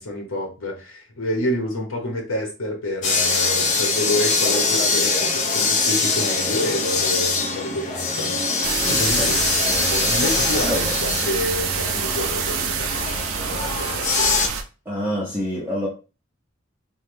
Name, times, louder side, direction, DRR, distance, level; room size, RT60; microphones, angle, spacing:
voice 1, 0.0-14.3, left 1 dB, 75° left, 0.9 m, -28 dB
sound 1, 3.0-14.5, left 4 dB, 35° left, 0.4 m, -23 dB
sound 2, 8.6-14.6, right 7 dB, 75° right, 0.4 m, -26 dB
voice 2, 10.6-11.0 14.9-15.9, equal, 10° right, 0.6 m, -26 dB
3.2 x 2.2 x 3.2 m
head